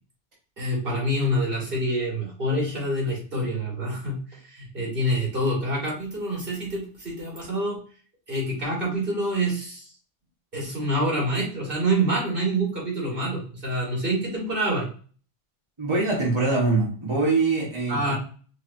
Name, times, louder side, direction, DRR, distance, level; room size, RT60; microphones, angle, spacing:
voice 1, 0.6-7.8 8.3-9.9 10.5-14.9 17.9-18.1, right 1 dB, 60° right, -4 dB, 2.4 m, -26 dB
voice 2, 15.8-18.1, right 3 dB, 25° right, -4 dB, 1.5 m, -23 dB
4.9 x 4.0 x 2.7 m, 0.41 s
omnidirectional pair, 1.1 m